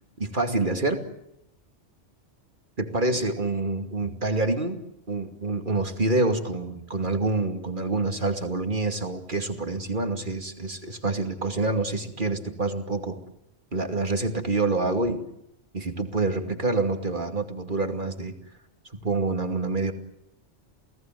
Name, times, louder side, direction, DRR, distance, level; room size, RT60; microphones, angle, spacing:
voice 1, 0.2-1.1 2.8-4.8 5.1-13.2 13.7-15.2 15.7-18.3 18.9-19.9, right 2 dB, 40° right, 7 dB, 2.7 m, -27 dB
29.0 x 18.5 x 9.3 m, 0.82 s
omnidirectional pair, 1.3 m